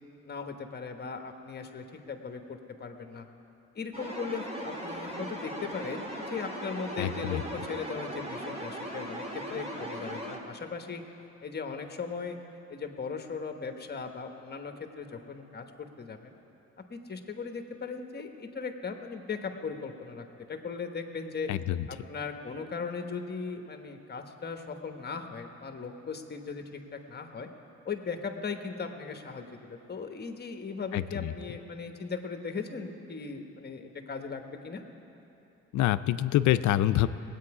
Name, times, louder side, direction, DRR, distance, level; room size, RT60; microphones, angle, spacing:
voice 1, 0.2-3.3 3.7-11.0 11.4-12.4 12.7-16.3 16.9-21.5 21.9-27.5 27.8-34.8, left 5 dB, 35° left, 5 dB, 1.2 m, -38 dB
sound 1, 3.9-10.4, equal, 20° right, 1.8 m, -38 dB
voice 2, 7.0-7.4 21.5-21.9 30.9-31.3 35.7-37.1, left 13 dB, 75° left, 13 dB, 0.5 m, -26 dB
19.5 x 8.7 x 4.9 m, 2.9 s
cardioid pair, 90°, 30 cm